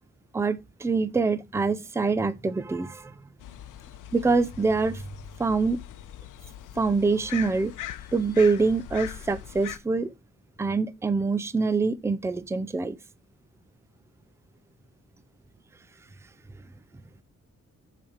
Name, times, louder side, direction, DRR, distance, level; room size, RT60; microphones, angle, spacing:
voice 1, 0.3-3.1 4.1-5.0 5.4-5.8 6.8-7.7 8.1-10.1 10.6-13.0, right 4 dB, 10° right, 0.5 m, -25 dB
sound 1, 3.4-9.8, left 11 dB, 85° left, 0.8 m, -41 dB
7.0 x 5.0 x 4.9 m
wide cardioid pair, 165°, 30 cm